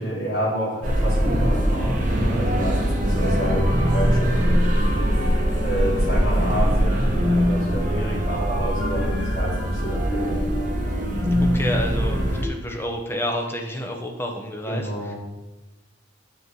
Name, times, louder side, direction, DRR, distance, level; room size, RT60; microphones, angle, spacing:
voice 1, 0.0-5.0 5.6-10.5 14.7-15.2, equal, 55° left, -6 dB, 3.6 m, -29 dB
sound 1, 0.8-12.4, equal, 40° right, 1.3 m, -22 dB
voice 2, 11.4-15.1, equal, 10° left, 2 dB, 1.0 m, -29 dB
9.1 x 6.5 x 4.6 m, 1.1 s
head